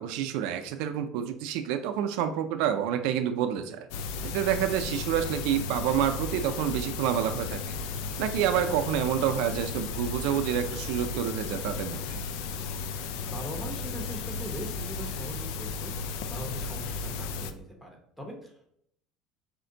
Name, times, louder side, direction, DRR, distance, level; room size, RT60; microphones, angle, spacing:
voice 1, 0.0-3.9 4.2-7.8 8.2-12.2, right 9 dB, 75° right, 7 dB, 0.4 m, -28 dB
sound 1, 3.9-17.5, left 4 dB, 80° left, 0.4 m, -34 dB
voice 2, 13.3-18.7, equal, 5° left, 1 dB, 0.9 m, -41 dB
4.3 x 2.5 x 3.8 m, 0.70 s
cardioid pair, 135°, 0 cm